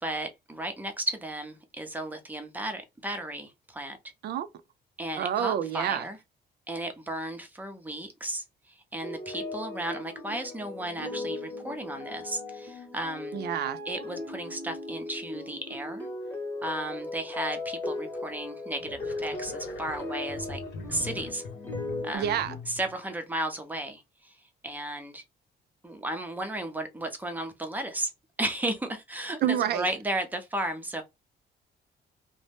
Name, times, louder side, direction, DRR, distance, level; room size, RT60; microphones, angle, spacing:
voice 1, 0.0-4.0 5.0-6.2 6.7-13.4 13.9-16.1 16.6-20.6 20.9-21.4 22.0-22.4 22.7-24.4 24.6-25.2 25.8-28.1 28.4-31.0, right 1 dB, 10° right, 0.6 m, -34 dB
voice 2, 5.2-6.0 13.3-13.8 22.1-22.6 29.4-29.9, right 10 dB, 65° right, 0.4 m, -28 dB
sound 1, 9.0-22.2, left 2 dB, 10° left, 0.9 m, -37 dB
sound 2, 18.7-23.0, left 4 dB, 80° left, 0.9 m, -41 dB
2.6 x 2.0 x 3.3 m
cardioid pair, 135°, 18 cm